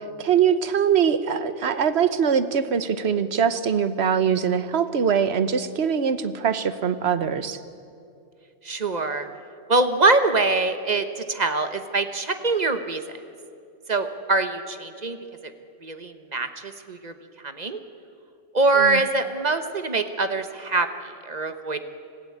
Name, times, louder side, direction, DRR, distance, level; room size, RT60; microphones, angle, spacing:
voice 1, 0.2-7.6 18.7-19.0, right 7 dB, 55° right, 12 dB, 1.2 m, -22 dB
voice 2, 8.6-9.3 9.7-13.0 13.9-15.2 15.8-17.1 17.4-17.8 18.5-20.9 21.3-21.8, right 3 dB, 35° right, 9 dB, 1.1 m, -23 dB
26.0 x 15.5 x 8.6 m, 2.6 s
omnidirectional pair, 1.3 m